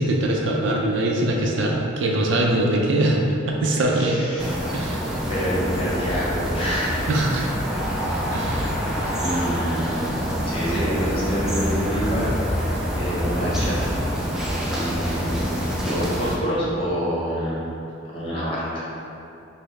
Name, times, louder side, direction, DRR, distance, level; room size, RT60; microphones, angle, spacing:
voice 1, 0.0-3.2 3.5-4.2 4.7-5.0 7.1-7.5 8.3-8.8, right 1 dB, 65° right, -1 dB, 0.5 m, -22 dB
voice 2, 3.9-4.6 5.3-7.1 7.4-7.5 8.7-10.1 10.4-13.9 14.6-15.5 15.7-17.6 18.0-18.9, equal, 25° left, -7 dB, 0.9 m, -27 dB
sound 1, 4.4-16.4, equal, ahead, 0.3 m, -26 dB
5.7 x 2.0 x 3.2 m, 2.7 s
head